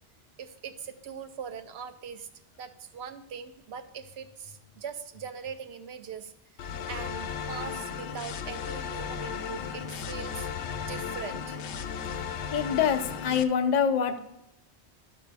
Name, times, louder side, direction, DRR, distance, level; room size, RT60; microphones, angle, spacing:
voice 1, 0.4-2.3 2.6-6.3 6.6-10.5 10.8-11.6, right 7 dB, 75° right, 9 dB, 0.9 m, -41 dB
sound 1, 6.6-13.4, left 7 dB, 85° left, 0.9 m, -35 dB
voice 2, 12.5-14.2, left 7 dB, 50° left, 6 dB, 0.6 m, -25 dB
11.0 x 5.2 x 3.4 m, 0.83 s
omnidirectional pair, 1.1 m